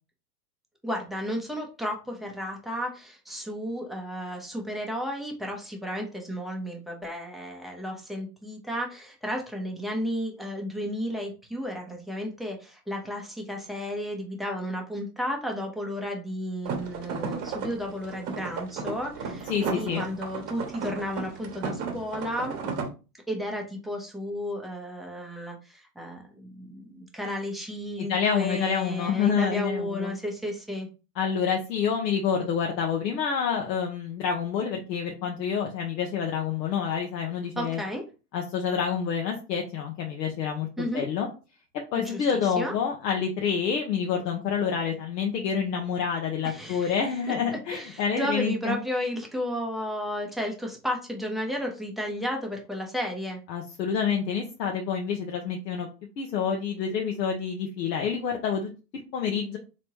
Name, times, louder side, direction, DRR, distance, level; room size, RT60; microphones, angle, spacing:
voice 1, 0.8-22.6 23.3-30.9 37.6-38.0 40.8-41.1 41.9-42.7 46.4-47.0 47.7-53.4, equal, ahead, 0 dB, 0.7 m, -33 dB
sound 1, 16.7-22.9, right 5 dB, 40° right, 1.0 m, -34 dB
voice 2, 19.5-20.0 28.0-30.1 31.2-37.8 38.3-41.3 41.9-48.8 53.5-55.9 56.2-58.7 59.1-59.6, left 7 dB, 85° left, 1 dB, 0.9 m, -28 dB
3.4 x 2.9 x 2.9 m, 0.32 s
hypercardioid pair, 120°, 49 cm